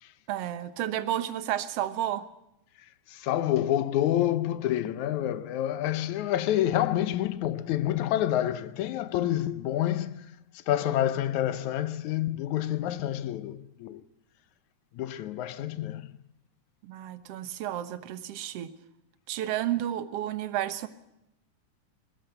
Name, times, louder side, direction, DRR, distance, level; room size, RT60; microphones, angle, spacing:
voice 1, 0.3-2.3 16.8-18.7 19.3-20.9, right 12 dB, 60° right, 2.0 m, -31 dB
voice 2, 3.1-14.0 14.9-16.1, left 12 dB, 75° left, 2.2 m, -28 dB
21.0 x 18.0 x 7.9 m
omnidirectional pair, 3.5 m